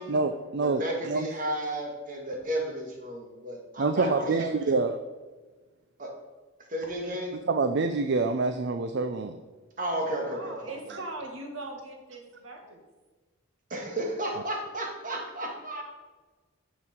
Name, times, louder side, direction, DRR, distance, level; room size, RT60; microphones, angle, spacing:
voice 1, 0.0-1.3 3.8-5.0 7.5-9.4, right 3 dB, 55° right, 9 dB, 0.5 m, -26 dB
voice 2, 0.6-4.8 6.0-6.1 6.7-7.4 9.8-11.0 13.7-15.8, right 1 dB, 40° right, 1 dB, 1.9 m, -33 dB
voice 3, 10.3-12.8, right 2 dB, 75° right, 2 dB, 2.0 m, -40 dB
9.9 x 7.6 x 4.4 m, 1.3 s
head